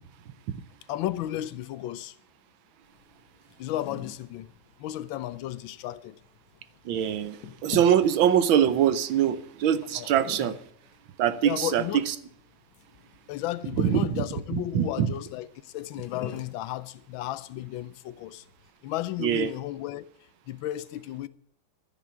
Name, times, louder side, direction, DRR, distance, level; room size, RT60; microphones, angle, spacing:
voice 1, 0.9-2.2 3.6-4.5 4.8-6.2 9.9-10.1 11.4-12.1 13.3-18.4 18.8-20.1 20.5-21.3, left 13 dB, 75° left, 1.4 m, -34 dB
sound 1, 2.8-18.7, left 7 dB, 55° left, 1.5 m, -46 dB
voice 2, 6.8-10.5 11.2-12.1 13.8-14.2 14.5-15.1 19.2-19.5, right 9 dB, 75° right, 1.5 m, -23 dB
14.0 x 6.1 x 8.2 m
omnidirectional pair, 2.3 m